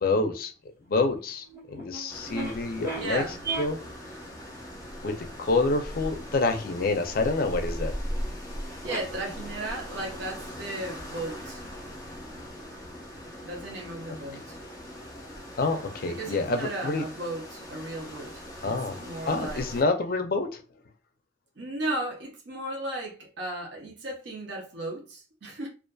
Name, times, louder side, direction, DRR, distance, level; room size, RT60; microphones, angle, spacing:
voice 1, 0.0-0.5 0.9-3.2 3.6-3.8 5.0-7.9 14.1-14.2 15.6-17.0 18.6-20.6, left 3 dB, 50° left, 0.4 m, -27 dB
sound 1, 1.1-1.2 1.4-3.1 3.4-4.3 5.0-5.1 7.8-7.9 8.1-8.2 8.8-9.0 9.5-10.1, right 3 dB, 15° right, 0.7 m, -36 dB
voice 2, 1.7-2.2 3.0-3.4 8.2-8.4 8.8-11.6 13.4-14.6 16.0-19.7 21.6-25.7, right 1 dB, 70° right, 0.7 m, -35 dB
sound 2, 2.1-19.8, equal, 20° left, 0.7 m, -40 dB
2.5 x 2.4 x 2.2 m
head